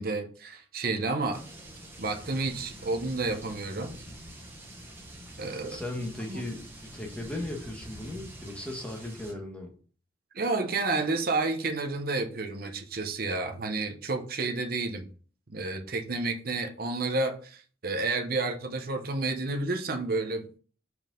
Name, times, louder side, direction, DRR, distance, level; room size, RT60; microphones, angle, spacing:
voice 1, 0.0-1.4 2.0-3.9 5.4-5.8 6.3-6.4 10.3-15.1 15.5-20.6, right 3 dB, 55° right, 5 dB, 0.9 m, -30 dB
sound 1, 1.3-9.3, right 1 dB, 15° right, 1.3 m, -46 dB
voice 2, 5.6-9.7, left 1 dB, 5° left, 2 dB, 1.3 m, -37 dB
5.3 x 4.8 x 3.8 m, 0.41 s
head